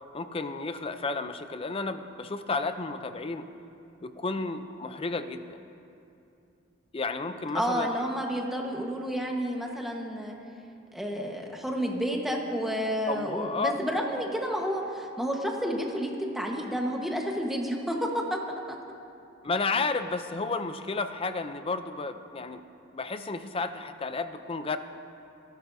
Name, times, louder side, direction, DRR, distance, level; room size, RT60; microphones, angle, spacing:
voice 1, 0.1-3.5 4.0-5.6 6.9-7.9 13.1-13.8 19.4-22.6 22.9-24.8, left 3 dB, 30° left, 10 dB, 0.5 m, -32 dB
voice 2, 7.5-10.4 10.9-18.4 18.7-18.8, equal, ahead, 0 dB, 1.3 m, -30 dB
28.0 x 12.0 x 2.7 m, 2.7 s
head